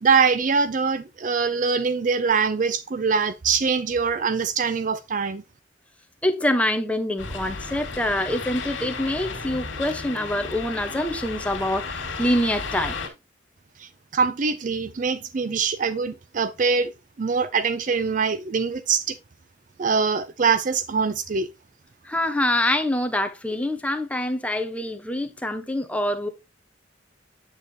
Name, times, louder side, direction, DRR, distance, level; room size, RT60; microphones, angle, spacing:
voice 1, 0.0-5.4 13.8-16.9 17.2-19.2 19.8-21.5, right 5 dB, 45° right, 0.4 m, -23 dB
voice 2, 6.2-13.0 22.0-26.3, left 1 dB, 5° left, 0.9 m, -25 dB
sound 1, 7.2-13.1, left 4 dB, 85° left, 2.0 m, -33 dB
8.2 x 7.2 x 2.8 m
head